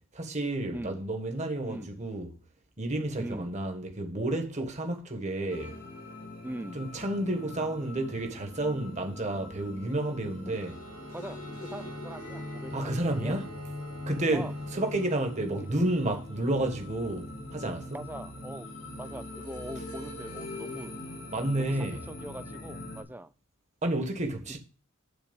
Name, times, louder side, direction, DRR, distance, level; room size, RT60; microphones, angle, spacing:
voice 1, 0.1-2.3 2.8-5.7 6.7-10.8 12.7-13.5 14.1-18.0 21.3-22.0 23.8-24.6, right 1 dB, 35° right, 1.5 m, -31 dB
voice 2, 0.7-1.1 1.6-2.0 3.2-3.6 6.4-6.9 10.5-10.6 11.1-12.9 13.2-13.4 14.3-14.5 15.6-15.7 17.9-18.7 19.0-21.0 21.6-23.3, right 1 dB, 10° right, 0.4 m, -41 dB
sound 1, 5.5-23.0, left 2 dB, 90° left, 3.0 m, -42 dB
Bowed string instrument, 10.4-15.4, right 4 dB, 90° right, 1.1 m, -49 dB
10.5 x 4.3 x 5.3 m
head